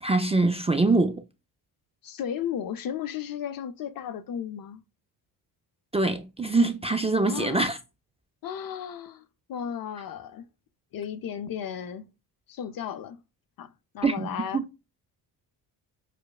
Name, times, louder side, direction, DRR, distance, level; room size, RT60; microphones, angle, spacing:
voice 1, 0.0-1.2 5.9-7.8 14.0-14.6, right 3 dB, 15° right, 0.3 m, -24 dB
voice 2, 2.0-4.8 7.3-7.7 8.4-10.5 10.9-12.1 12.5-13.2 13.6-14.6, left 9 dB, 50° left, 0.5 m, -34 dB
4.8 x 2.0 x 2.3 m
cardioid pair, 80°, 45 cm